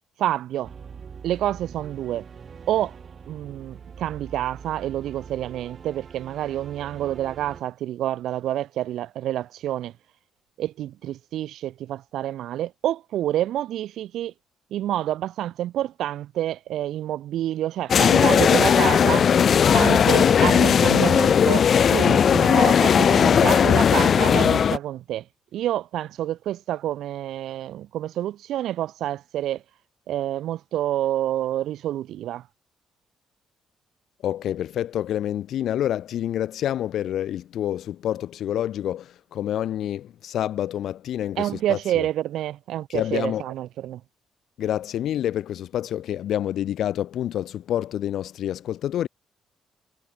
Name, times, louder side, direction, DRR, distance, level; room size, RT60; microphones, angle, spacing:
voice 1, 0.2-0.7 1.2-2.2 2.7-2.9 3.3-9.9 10.6-14.3 14.7-19.3 19.7-25.3 25.5-29.6 30.1-32.4 41.4-44.0, right 12 dB, 80° right, 2.8 m, -28 dB
sound 1, 0.6-7.6, right 6 dB, 45° right, 5.7 m, -43 dB
sound 2, 17.9-24.8, left 7 dB, 55° left, 0.4 m, -17 dB
voice 2, 34.2-42.1 42.9-43.4 44.6-49.1, left 11 dB, 75° left, 1.8 m, -28 dB
cardioid pair, 90°, 0 cm